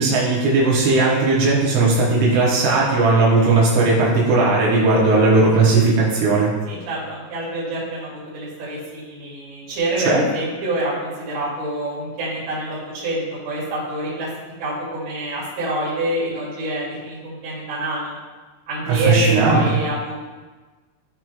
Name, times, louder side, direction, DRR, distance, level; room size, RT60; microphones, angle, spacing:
voice 1, 0.0-6.5 10.1-10.2 18.9-19.6, right 3 dB, 85° right, -5 dB, 3.5 m, -17 dB
voice 2, 6.7-14.3 14.6-18.1 18.7-20.2, right 1 dB, 50° right, -8 dB, 3.6 m, -26 dB
13.5 x 4.6 x 2.3 m, 1.3 s
omnidirectional pair, 5.5 m